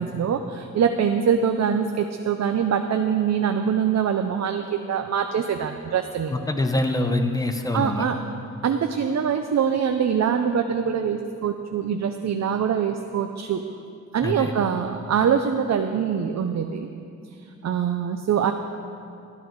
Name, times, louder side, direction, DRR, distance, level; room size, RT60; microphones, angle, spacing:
voice 1, 0.0-6.3 7.7-8.2 8.6-13.6 14.1-16.9 17.6-18.5, right 7 dB, 60° right, 6 dB, 0.6 m, -24 dB
voice 2, 6.3-8.1 14.2-14.5, left 1 dB, 10° left, 5 dB, 0.8 m, -24 dB
13.0 x 11.5 x 4.6 m, 2.6 s
wide cardioid pair, 140°, 30 cm